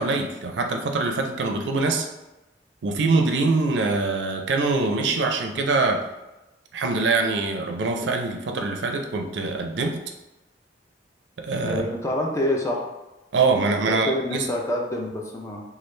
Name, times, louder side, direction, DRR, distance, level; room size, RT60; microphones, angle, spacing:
voice 1, 0.0-2.1 2.8-6.0 6.7-10.0 11.4-11.8 13.3-14.5, right 3 dB, 90° right, 4 dB, 0.4 m, -24 dB
voice 2, 11.7-12.9 13.9-15.6, left 1 dB, 15° left, -1 dB, 0.5 m, -27 dB
3.1 x 2.4 x 3.1 m, 1.0 s
head